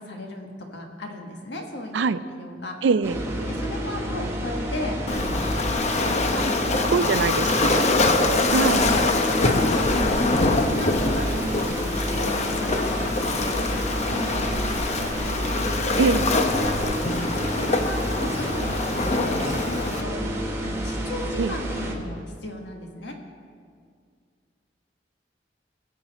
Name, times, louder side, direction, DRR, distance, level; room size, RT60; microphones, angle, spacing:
voice 1, 0.0-2.8 3.5-7.1 7.4-7.6 8.1-13.8 14.1-15.1 16.5-23.1, left 1 dB, 70° left, 2 dB, 1.6 m, -36 dB
voice 2, 2.8-3.2 6.9-7.9 8.5-8.9 16.0-16.3 21.4-21.5, right 5 dB, 75° right, 15 dB, 0.4 m, -23 dB
sound 1, 3.0-21.9, equal, 15° right, 1.5 m, -29 dB
Waves surf, 5.1-20.0, left 3 dB, 40° left, 0.8 m, -24 dB
20.0 x 7.6 x 4.2 m, 2.2 s
head